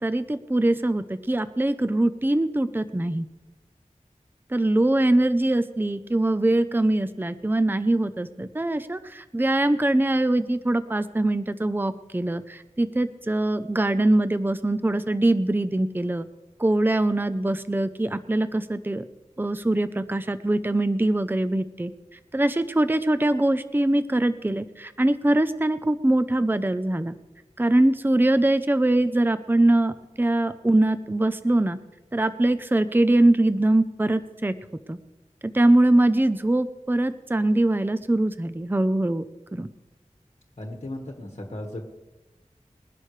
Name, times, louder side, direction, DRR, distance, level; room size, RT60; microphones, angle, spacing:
voice 1, 0.0-3.3 4.5-16.3 16.6-19.0 19.4-27.1 27.6-31.8 32.1-34.5 34.9-35.0 35.4-39.7, right 1 dB, 15° right, 12 dB, 0.6 m, -23 dB
voice 2, 40.6-41.9, left 1 dB, 55° left, 2 dB, 1.6 m, -36 dB
21.5 x 11.0 x 3.3 m, 1.0 s
wide cardioid pair, 55°, 13 cm